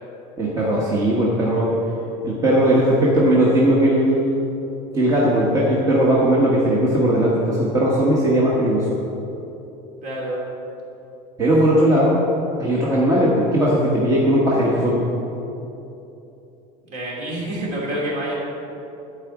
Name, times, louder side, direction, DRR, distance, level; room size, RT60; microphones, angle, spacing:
voice 1, 0.4-1.7 2.2-4.4 4.9-8.9 11.4-12.2 12.6-15.1, right 1 dB, 20° right, -5 dB, 1.3 m, -18 dB
voice 2, 10.0-10.4 16.8-18.4, right 1 dB, 45° right, -3 dB, 2.9 m, -27 dB
11.5 x 4.9 x 8.5 m, 2.9 s
cardioid pair, 170°, 18 cm